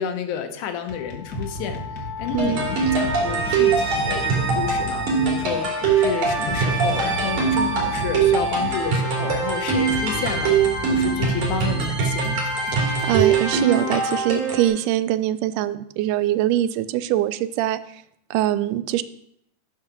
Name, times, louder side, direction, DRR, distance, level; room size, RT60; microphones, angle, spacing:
voice 1, 0.0-1.8 2.2-5.7 6.0-10.5 10.9-12.4, left 8 dB, 75° left, 7 dB, 2.3 m, -30 dB
sound 1, 0.9-14.0, left 2 dB, 50° left, 1.2 m, -33 dB
voice 2, 2.3-2.7 12.7-18.0 18.3-19.0, right 13 dB, 85° right, 14 dB, 2.1 m, -23 dB
sound 2, 2.4-14.7, right 5 dB, 70° right, 4.0 m, -22 dB
10.5 x 4.6 x 6.0 m, 0.71 s
omnidirectional pair, 3.6 m